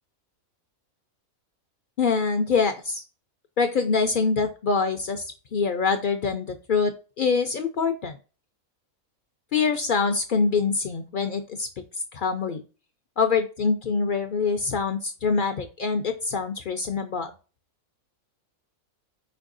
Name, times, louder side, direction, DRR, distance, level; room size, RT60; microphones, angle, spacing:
voice 1, 2.0-3.0 3.6-8.2 9.5-11.7 12.1-12.6 13.2-17.3, left 5 dB, 70° left, 7 dB, 0.4 m, -25 dB
4.6 x 4.4 x 2.5 m, 0.33 s
omnidirectional pair, 1.5 m